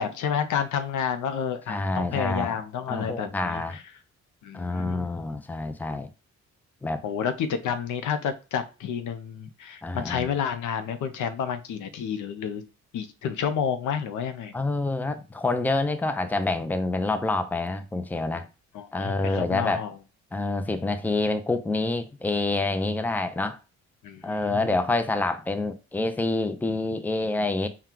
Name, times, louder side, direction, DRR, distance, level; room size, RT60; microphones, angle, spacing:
voice 1, 0.0-3.8 4.4-5.1 7.0-12.6 12.9-14.5 18.7-19.9 24.0-24.7, left 7 dB, 85° left, 0.6 m, -30 dB
voice 2, 1.7-2.6 2.9-3.8 4.5-6.1 6.8-7.0 9.8-10.3 14.5-18.5 18.9-19.8 20.3-23.6 24.2-27.7, left 2 dB, 5° left, 0.5 m, -27 dB
4.4 x 2.3 x 3.7 m
cardioid pair, 90°, 29 cm